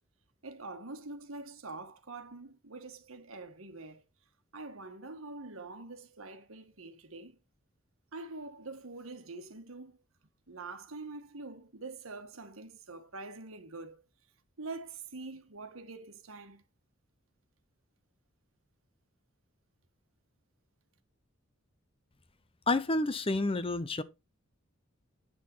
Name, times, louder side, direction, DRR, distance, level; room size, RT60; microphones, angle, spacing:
voice 1, 0.4-4.0 4.5-7.4 8.1-10.0 10.5-14.0 14.6-16.6, right 3 dB, 85° right, 1.5 m, -45 dB
voice 2, 22.7-24.0, left 2 dB, 25° left, 0.7 m, -29 dB
9.4 x 6.4 x 4.4 m
head